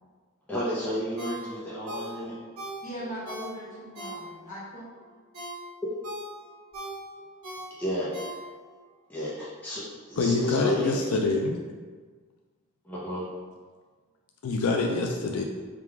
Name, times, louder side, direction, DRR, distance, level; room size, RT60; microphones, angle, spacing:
voice 1, 0.5-2.3 7.8-8.1 9.1-9.8 10.1-11.0 12.8-13.3, equal, 10° left, -8 dB, 0.6 m, -31 dB
Ringtone, 1.2-4.6 5.0-8.8 9.2-9.3, right 1 dB, 90° right, 1.5 m, -41 dB
voice 2, 2.8-4.8, equal, 35° left, -8 dB, 1.3 m, -39 dB
voice 3, 10.2-11.6 14.4-15.4, left 3 dB, 75° left, 1 dB, 0.4 m, -25 dB
3.7 x 2.3 x 4.6 m, 1.5 s
head